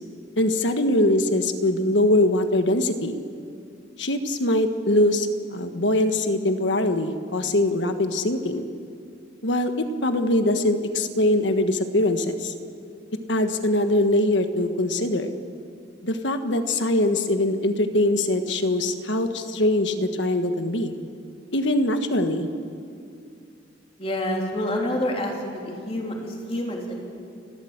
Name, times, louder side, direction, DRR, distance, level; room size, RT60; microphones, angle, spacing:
voice 1, 0.4-3.1 4.0-8.6 9.4-12.5 13.3-15.3 16.0-20.9 21.5-22.5, left 1 dB, 75° left, 8 dB, 1.4 m, -22 dB
voice 2, 24.0-27.0, left 1 dB, 35° left, 0 dB, 3.3 m, -28 dB
30.0 x 13.0 x 8.1 m, 2.4 s
head